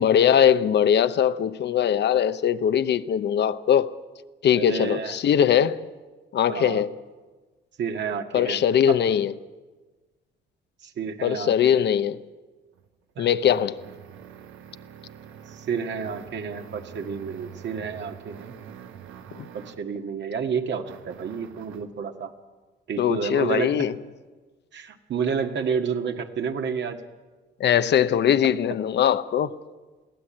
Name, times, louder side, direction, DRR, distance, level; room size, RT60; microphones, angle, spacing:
voice 1, 0.0-3.9 4.4-5.8 6.3-6.9 8.3-9.3 11.2-12.2 13.2-13.8 19.4-19.5 23.0-23.9 27.6-29.5, left 9 dB, 60° left, 0.8 m, -21 dB
voice 2, 4.5-5.2 6.5-6.8 7.8-8.6 8.9-9.0 10.8-11.7 13.2-13.3 15.5-18.5 19.5-22.3 22.9-23.9 24.7-27.0, right 6 dB, 65° right, 1.8 m, -30 dB
sound 1, 12.7-19.9 20.8-22.0, right 8 dB, 85° right, 1.2 m, -45 dB
22.5 x 15.5 x 8.7 m
cardioid pair, 90°, 20 cm